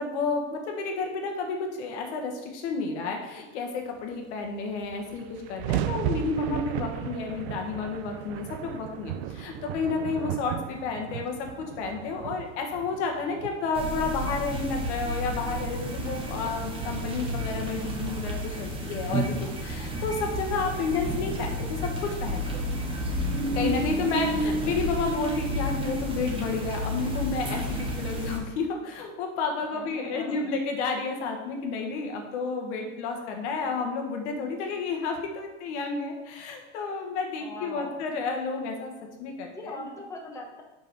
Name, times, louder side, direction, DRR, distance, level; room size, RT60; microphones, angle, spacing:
voice 1, 0.0-22.6 23.5-38.9 39.2-39.9, left 4 dB, 65° left, 2 dB, 1.4 m, -31 dB
sound 1, 4.5-4.6 4.7-19.1, right 12 dB, 60° right, 0.5 m, -37 dB
sound 2, 13.7-28.4, equal, 15° right, 1.3 m, -31 dB
voice 2, 16.3-16.7 29.7-30.5 37.4-38.0 39.5-40.6, left 2 dB, 10° left, -1 dB, 1.0 m, -42 dB
5.4 x 5.2 x 4.6 m, 1.1 s
supercardioid pair, 125°, 36 cm